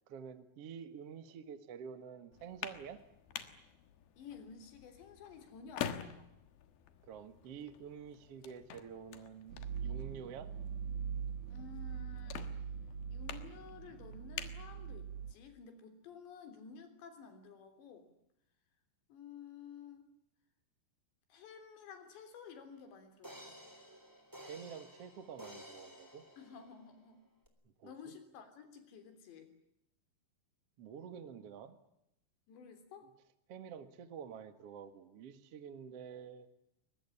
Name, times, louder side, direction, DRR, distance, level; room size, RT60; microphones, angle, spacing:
voice 1, 0.1-3.0 7.0-9.6 9.8-10.5 24.5-26.2 27.8-28.1 30.8-31.8 33.5-36.5, right 7 dB, 50° right, 10 dB, 1.9 m, -48 dB
sound 1, 2.3-15.4, left 9 dB, 65° left, 3.1 m, -48 dB
voice 2, 4.2-6.3 11.5-12.5 13.1-18.1 19.1-20.1 21.3-23.5 26.4-27.2 27.8-29.5 32.5-33.1, left 6 dB, 85° left, 8 dB, 5.6 m, -53 dB
sound 2, 9.5-15.3, right 7 dB, 75° right, 1.6 m, -42 dB
sound 3, 22.5-22.6 23.2-27.0 27.4-27.5, equal, 5° right, 2.8 m, -53 dB
23.0 x 21.0 x 9.8 m, 0.82 s
omnidirectional pair, 4.9 m